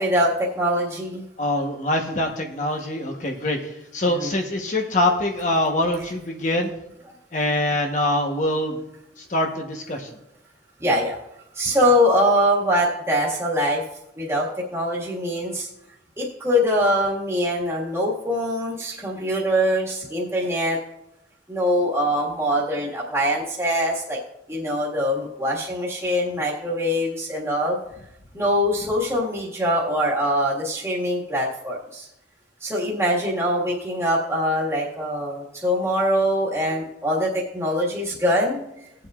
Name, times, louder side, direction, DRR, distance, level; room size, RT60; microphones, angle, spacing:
voice 1, 0.0-1.2 4.2-4.3 10.8-11.2 11.5-13.8 14.2-15.7 16.2-20.8 21.5-24.2 24.5-27.8 28.3-32.1 32.6-38.6, equal, 15° right, -5 dB, 1.7 m, -23 dB
voice 2, 1.4-3.6 3.9-6.7 7.3-8.8 9.3-10.1, left 1 dB, 40° left, 3 dB, 1.0 m, -24 dB
19.0 x 7.7 x 2.4 m, 0.84 s
head